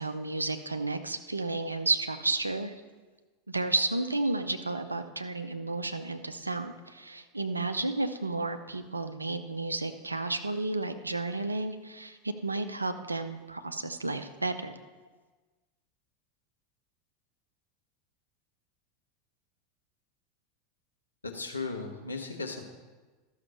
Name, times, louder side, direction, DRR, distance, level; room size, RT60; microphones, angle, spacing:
voice 1, 0.0-2.7 3.5-14.8, right 2 dB, 90° right, 9 dB, 0.6 m, -32 dB
voice 2, 21.2-22.7, left 3 dB, 85° left, 3 dB, 1.2 m, -36 dB
13.0 x 6.5 x 5.5 m, 1.3 s
figure-of-eight pair, 85°, 0 cm